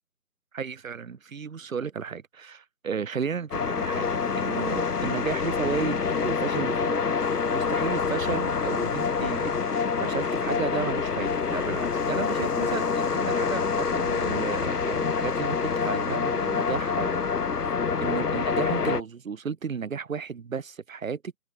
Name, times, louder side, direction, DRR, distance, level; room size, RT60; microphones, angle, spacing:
voice 1, 0.5-7.1 7.5-17.2 18.0-21.2, right 6 dB, 65° right, 0.5 m, -33 dB
sound 1, 3.5-19.0, left 5 dB, 80° left, 0.9 m, -26 dB
open air
figure-of-eight pair, 170°, 46 cm